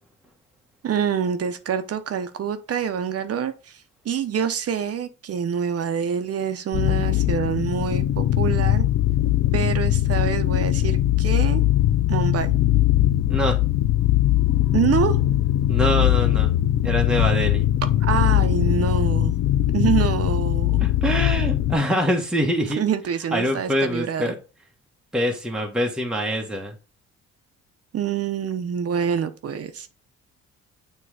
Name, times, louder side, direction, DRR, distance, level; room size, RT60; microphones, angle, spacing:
voice 1, 0.8-3.5 4.0-8.8 9.5-11.6 12.1-12.5 14.7-15.2 18.0-19.3 19.7-20.8 22.8-24.3 27.9-29.9, right 8 dB, 50° right, 0.9 m, -26 dB
sound 1, 6.7-21.8, left 13 dB, 65° left, 0.6 m, -20 dB
voice 2, 13.2-13.6 15.7-16.5 16.8-17.7 20.8-22.8 23.3-24.4 25.1-26.7, equal, 5° right, 1.2 m, -24 dB
7.0 x 3.2 x 4.9 m
cardioid pair, 90°, 30 cm